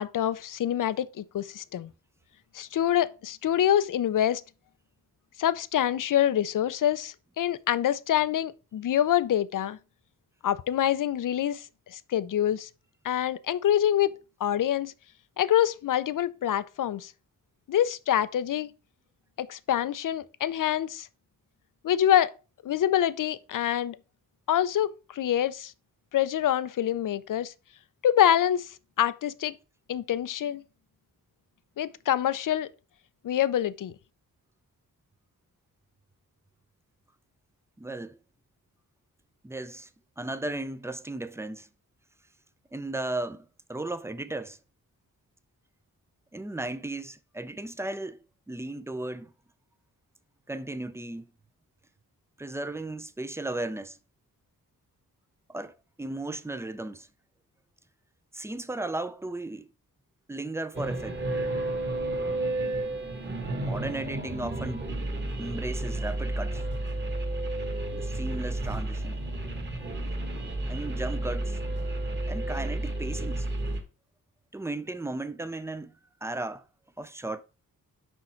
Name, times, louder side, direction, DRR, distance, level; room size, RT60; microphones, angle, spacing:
voice 1, 0.0-1.9 2.5-4.4 5.4-9.8 10.4-12.7 13.0-14.2 14.4-14.9 15.4-17.1 17.7-18.7 19.4-21.1 21.8-22.3 22.6-24.0 24.5-25.7 26.1-27.5 28.0-29.5 29.9-30.6 31.8-32.7 33.2-33.9, left 11 dB, 60° left, 0.5 m, -26 dB
voice 2, 37.8-38.2 39.4-39.9 40.2-41.7 42.7-44.6 46.3-48.2 48.5-49.3 50.5-51.3 52.4-54.0 55.5-57.1 58.3-59.7 60.3-61.2 63.6-64.8 65.4-66.6 67.9-69.2 70.7-71.6 72.3-73.5 74.5-75.9 76.2-76.6 77.0-77.4, right 2 dB, 10° right, 0.5 m, -35 dB
sound 1, 60.7-73.8, right 2 dB, 30° right, 1.4 m, -31 dB
6.3 x 5.4 x 4.4 m
wide cardioid pair, 120°, 35 cm